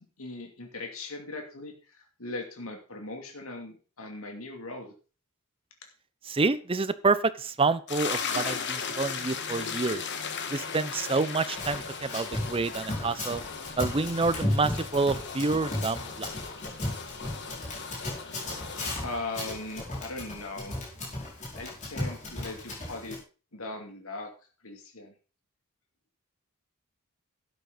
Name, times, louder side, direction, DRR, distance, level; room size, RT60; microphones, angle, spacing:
voice 1, 0.2-4.9 19.0-20.8 21.5-23.2 23.5-24.3 24.6-25.1, left 2 dB, 70° left, 3 dB, 2.5 m, -39 dB
voice 2, 6.3-10.0 10.5-13.4 13.8-16.3, right 3 dB, 25° right, 14 dB, 0.6 m, -28 dB
sound 1, 7.9-18.9, left 5 dB, 55° left, 1.6 m, -37 dB
Run, 11.5-23.2, left 1 dB, 35° left, 5.1 m, -35 dB
12.0 x 9.3 x 3.9 m, 0.36 s
head